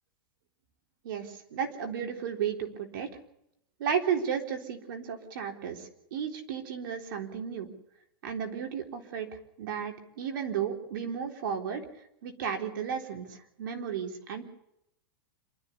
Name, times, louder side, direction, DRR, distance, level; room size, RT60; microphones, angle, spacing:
voice 1, 1.0-3.1 3.8-7.7 8.2-9.3 9.6-11.8 12.2-14.4, right 7 dB, 70° right, 4 dB, 3.8 m, -33 dB
27.0 x 13.5 x 8.3 m, 0.78 s
hypercardioid pair, 135°, 12 cm